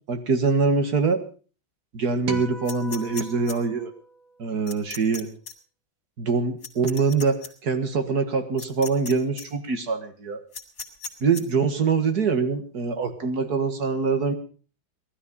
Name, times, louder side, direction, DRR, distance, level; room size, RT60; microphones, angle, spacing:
voice 1, 0.1-1.2 1.9-3.9 4.4-5.3 6.2-7.4 7.6-10.4 11.2-14.3, right 4 dB, 50° right, 8 dB, 2.2 m, -24 dB
sound 1, 2.3-4.8, right 3 dB, 75° right, 2.4 m, -39 dB
sound 2, 2.7-3.6 4.7-5.2 5.5-5.6 6.6-7.5 8.6-9.1 9.4-9.5 10.5-11.4, left 5 dB, 55° left, 3.2 m, -36 dB
19.0 x 13.0 x 5.5 m, 0.40 s
omnidirectional pair, 2.2 m